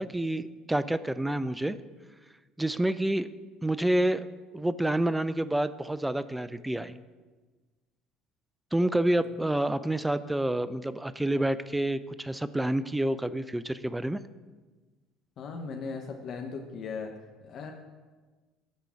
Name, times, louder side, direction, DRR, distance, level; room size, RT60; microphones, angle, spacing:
voice 1, 0.0-1.8 2.6-3.3 3.6-4.3 4.5-7.0 8.7-14.2, right 1 dB, 10° right, 14 dB, 0.4 m, -28 dB
voice 2, 15.4-17.1 17.4-17.7, left 5 dB, 50° left, 3 dB, 0.9 m, -37 dB
10.5 x 3.8 x 7.0 m, 1.3 s
hypercardioid pair, 65°, 0 cm